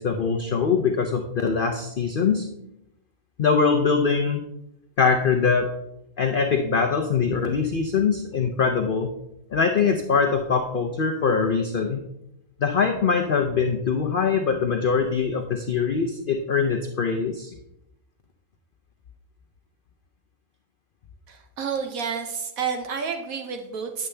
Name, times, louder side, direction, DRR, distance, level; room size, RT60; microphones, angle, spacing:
voice 1, 0.0-2.5 3.4-4.4 5.0-5.7 6.2-9.1 9.5-12.0 12.6-17.6, left 5 dB, 50° left, 4 dB, 0.6 m, -23 dB
voice 2, 21.3-24.1, right 6 dB, 75° right, 4 dB, 1.2 m, -30 dB
9.8 x 7.0 x 3.3 m, 0.82 s
omnidirectional pair, 1.5 m